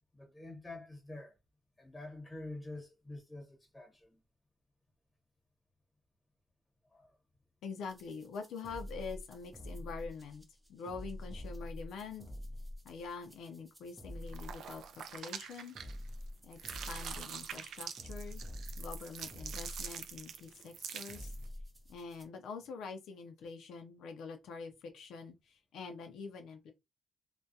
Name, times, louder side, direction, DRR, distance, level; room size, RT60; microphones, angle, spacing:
voice 1, 0.1-1.3 1.8-4.2 6.9-7.1, left 2 dB, 10° left, 1.1 m, -47 dB
voice 2, 7.6-10.4 10.7-12.3 12.8-15.8 16.4-18.4 18.8-21.3 21.9-26.7, left 5 dB, 75° left, 0.4 m, -45 dB
sound 1, 7.9-22.2, left 1 dB, 10° right, 0.5 m, -47 dB
sound 2, 14.3-16.2 16.5-21.5, right 7 dB, 70° right, 0.3 m, -45 dB
2.3 x 2.1 x 2.6 m
cardioid pair, 90°, 0 cm